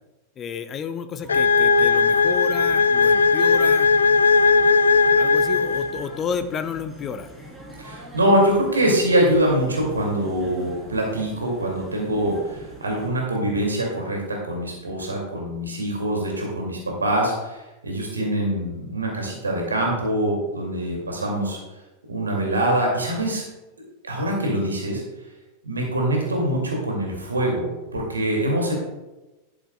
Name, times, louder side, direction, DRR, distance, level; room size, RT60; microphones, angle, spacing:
voice 1, 0.4-3.9 5.2-7.3, left 6 dB, 25° left, 11 dB, 0.7 m, -31 dB
sound 1, 1.2-13.1, equal, 10° right, 3.0 m, -43 dB
sound 2, 1.3-6.2, left 4 dB, 70° left, 0.3 m, -18 dB
voice 2, 7.8-21.6 22.1-23.4 24.0-25.0 25.6-28.7, right 1 dB, 75° right, 0 dB, 2.3 m, -24 dB
11.5 x 10.0 x 2.3 m, 1.1 s
figure-of-eight pair, 90°, 0 cm